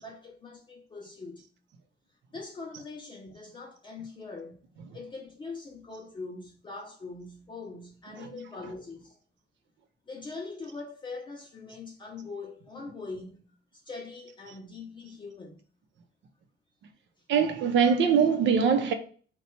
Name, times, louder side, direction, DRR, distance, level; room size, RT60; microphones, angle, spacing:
voice 1, 0.0-1.5 2.3-9.2 10.1-15.6, left 3 dB, 25° left, 0.5 m, -42 dB
voice 2, 17.3-18.9, right 6 dB, 90° right, 0.7 m, -23 dB
4.0 x 2.3 x 4.3 m
wide cardioid pair, 180°, 19 cm